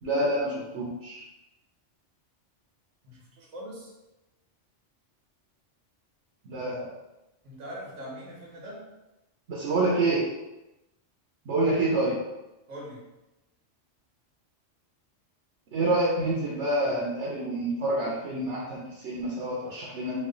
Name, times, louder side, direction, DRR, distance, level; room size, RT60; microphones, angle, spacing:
voice 1, 0.0-1.2 6.4-6.9 9.5-10.3 11.4-12.2 15.7-20.3, right 2 dB, 70° right, -5 dB, 1.0 m, -27 dB
voice 2, 3.0-3.9 7.4-8.9 12.7-13.0, equal, 85° right, -3 dB, 1.3 m, -42 dB
3.1 x 2.5 x 3.7 m, 0.98 s
omnidirectional pair, 1.2 m